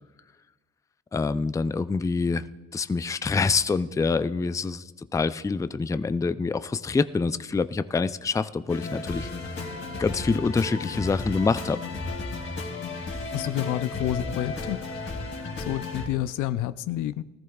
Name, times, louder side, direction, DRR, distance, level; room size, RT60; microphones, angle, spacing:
voice 1, 1.1-2.4 2.7-9.3 10.0-11.8, left 4 dB, 10° left, 13 dB, 0.4 m, -26 dB
sound 1, 8.7-16.1, left 3 dB, 45° left, 2.6 m, -34 dB
voice 2, 13.3-14.9 15.7-17.2, left 13 dB, 85° left, 14 dB, 0.5 m, -29 dB
19.5 x 14.0 x 2.3 m, 1.2 s
cardioid pair, 90°, 30 cm